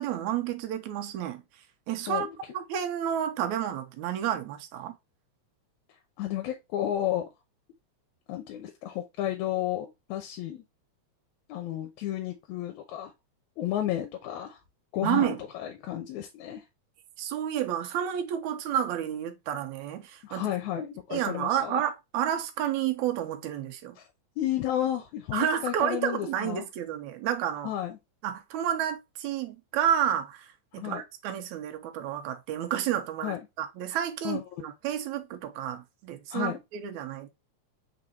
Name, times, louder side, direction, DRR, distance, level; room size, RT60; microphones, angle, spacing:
voice 1, 0.0-1.4 1.9-2.3 2.5-4.9 15.0-15.4 17.2-20.4 21.1-24.0 25.3-27.7 28.2-30.5 30.7-37.3, right 10 dB, 80° right, 2.1 m, -30 dB
voice 2, 6.2-7.3 8.3-10.6 11.5-13.1 13.6-14.6 14.9-16.6 20.2-21.8 24.0-24.1 24.4-26.7 27.6-28.0 30.7-31.0 33.2-33.4 34.2-34.4 36.3-36.6, left 12 dB, 80° left, 2.1 m, -32 dB
4.9 x 3.9 x 2.7 m
omnidirectional pair, 3.4 m